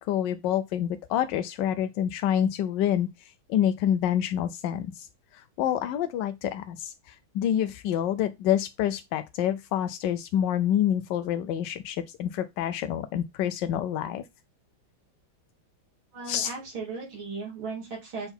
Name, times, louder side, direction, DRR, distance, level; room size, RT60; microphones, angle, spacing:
voice 1, 0.0-5.1 5.3-14.2 16.3-16.5, left 10 dB, 75° left, 1.1 m, -27 dB
voice 2, 16.1-18.3, right 4 dB, 80° right, 3.4 m, -36 dB
6.7 x 3.6 x 4.4 m
omnidirectional pair, 2.2 m